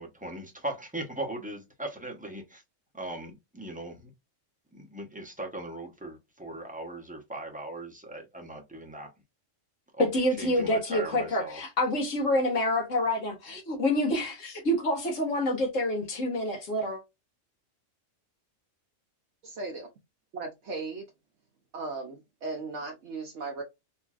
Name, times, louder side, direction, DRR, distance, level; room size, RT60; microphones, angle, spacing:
voice 1, 0.0-2.6 2.9-4.1 4.7-9.1 9.9-10.1 10.4-11.6, right 1 dB, 10° right, 0.7 m, -39 dB
voice 2, 10.0-17.0, left 1 dB, 80° left, 1.6 m, -27 dB
voice 3, 19.4-19.9 20.3-21.0 21.7-23.6, right 3 dB, 65° right, 0.9 m, -37 dB
4.5 x 2.6 x 2.3 m
omnidirectional pair, 1.3 m